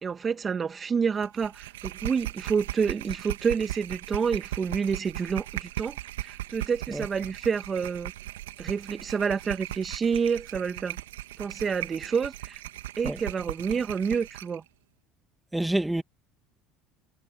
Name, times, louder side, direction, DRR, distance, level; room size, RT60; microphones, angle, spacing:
voice 1, 0.0-6.0 6.2-8.1 8.6-11.0 11.4-12.6 13.0-14.6, right 6 dB, 30° right, 1.8 m, -28 dB
sound 1, 1.2-14.6, right 15 dB, 80° right, 2.0 m, -38 dB
voice 2, 15.5-16.0, right 1 dB, 10° right, 2.1 m, -27 dB
hypercardioid pair, 70°, 0 cm